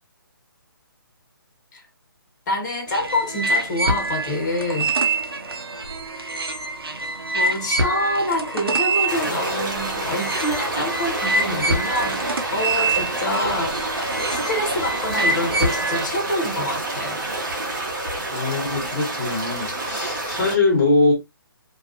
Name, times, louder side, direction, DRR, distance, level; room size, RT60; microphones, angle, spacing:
voice 1, 2.5-4.9 7.3-13.9 14.3-17.2, left 1 dB, 50° left, 1.2 m, -26 dB
sound 1, 2.9-16.1, right 2 dB, 85° right, 0.7 m, -26 dB
sound 2, 9.1-20.6, right 2 dB, 55° right, 1.0 m, -28 dB
voice 2, 18.3-21.1, left 3 dB, 20° left, 1.4 m, -21 dB
2.7 x 2.3 x 2.6 m
figure-of-eight pair, 150°, 12 cm